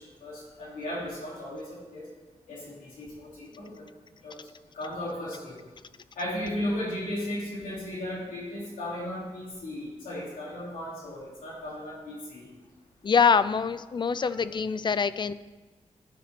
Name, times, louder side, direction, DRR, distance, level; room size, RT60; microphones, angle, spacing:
voice 1, 0.0-2.1 2.5-3.8 4.2-4.4 4.7-5.6 6.2-12.5 14.2-14.4, left 1 dB, 90° left, -7 dB, 2.6 m, -36 dB
voice 2, 13.0-15.3, left 6 dB, 35° left, 15 dB, 0.3 m, -24 dB
12.5 x 5.0 x 2.9 m, 1.2 s
supercardioid pair, 50°, 13 cm